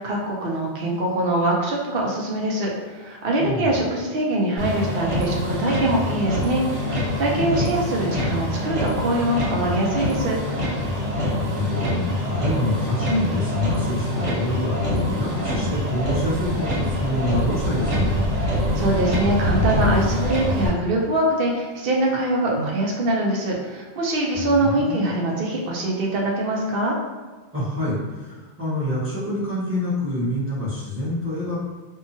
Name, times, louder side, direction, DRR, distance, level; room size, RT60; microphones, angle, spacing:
voice 1, 0.0-6.6 7.2-10.4 18.8-27.0, right 1 dB, 60° right, -2 dB, 0.8 m, -23 dB
voice 2, 3.4-3.8 7.3-7.6 11.3-18.2 24.3-25.1 27.5-31.5, left 1 dB, 15° right, -11 dB, 0.8 m, -26 dB
Motor vehicle (road), 4.6-20.7, left 1 dB, 80° right, 1.4 m, -25 dB
2.7 x 2.3 x 2.6 m, 1.4 s
omnidirectional pair, 1.2 m